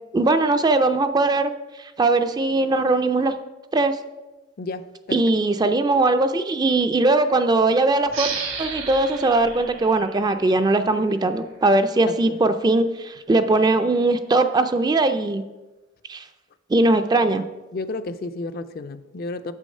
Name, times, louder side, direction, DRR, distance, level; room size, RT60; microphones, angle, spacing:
voice 1, 0.1-1.5 1.8-3.4 3.7-4.0 5.1-8.3 8.6-15.4 16.1-16.2 16.7-17.4, right 2 dB, 20° right, 0.3 m, -20 dB
voice 2, 4.6-5.2 12.1-12.4 17.7-19.5, left 3 dB, 50° left, 0.4 m, -32 dB
sound 1, 8.1-11.4, right 6 dB, 75° right, 1.5 m, -34 dB
7.0 x 6.3 x 5.4 m
head